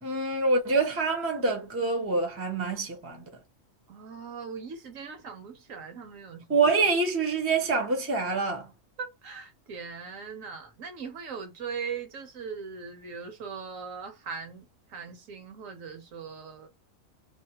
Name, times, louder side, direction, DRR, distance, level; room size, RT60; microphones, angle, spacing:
voice 1, 0.0-3.3 6.5-8.7, right 3 dB, 15° right, 0.5 m, -26 dB
voice 2, 3.9-6.6 9.0-16.7, right 5 dB, 70° right, 1.2 m, -40 dB
2.7 x 2.0 x 2.9 m
omnidirectional pair, 1.4 m